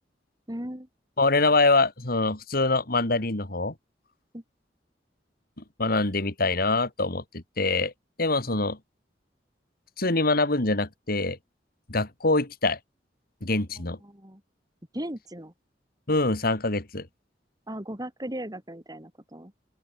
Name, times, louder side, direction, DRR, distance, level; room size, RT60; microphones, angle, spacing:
voice 1, 0.5-0.9 4.3-4.4 13.7-14.4 14.9-15.5 17.7-19.5, right 1 dB, 20° right, 5.2 m, -37 dB
voice 2, 1.2-3.7 5.6-7.9 8.2-8.8 10.0-11.4 11.9-12.8 13.4-14.0 16.1-17.1, left 3 dB, 55° left, 2.8 m, -24 dB
open air
head